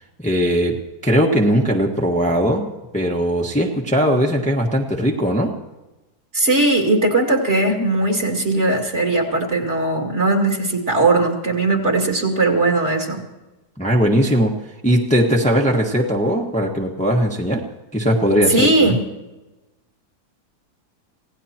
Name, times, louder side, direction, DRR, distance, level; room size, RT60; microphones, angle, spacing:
voice 1, 0.2-2.7 2.9-5.5 13.8-14.5 14.8-17.6 17.9-19.0, equal, 5° left, 0 dB, 1.4 m, -19 dB
voice 2, 6.3-13.2 18.5-19.0, right 2 dB, 45° right, 1 dB, 2.8 m, -18 dB
26.5 x 17.5 x 3.0 m, 1.1 s
omnidirectional pair, 1.7 m